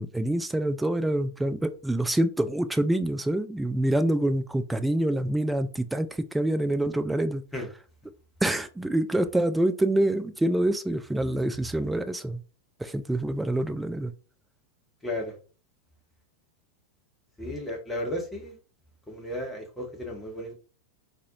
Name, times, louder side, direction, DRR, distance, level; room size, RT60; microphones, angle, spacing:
voice 1, 0.0-7.4 8.4-12.4 12.8-14.1, right 1 dB, 5° right, 9 dB, 0.3 m, -26 dB
voice 2, 15.0-15.3 17.4-18.6 19.1-20.5, left 1 dB, 10° left, 0 dB, 1.2 m, -34 dB
3.9 x 2.7 x 2.6 m, 0.36 s
figure-of-eight pair, 90°, 0 cm